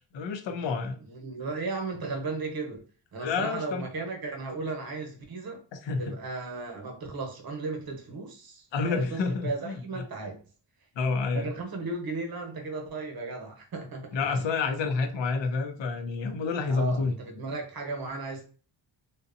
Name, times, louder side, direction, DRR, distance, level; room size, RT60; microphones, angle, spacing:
voice 1, 0.1-1.0 3.2-3.9 5.8-6.1 8.7-9.7 11.0-11.5 14.1-17.1, left 4 dB, 70° left, 0.6 m, -29 dB
voice 2, 1.0-5.6 6.0-10.4 11.3-14.6 16.7-18.5, right 3 dB, 50° right, 0.9 m, -35 dB
2.7 x 2.2 x 2.5 m
cardioid pair, 75°, 47 cm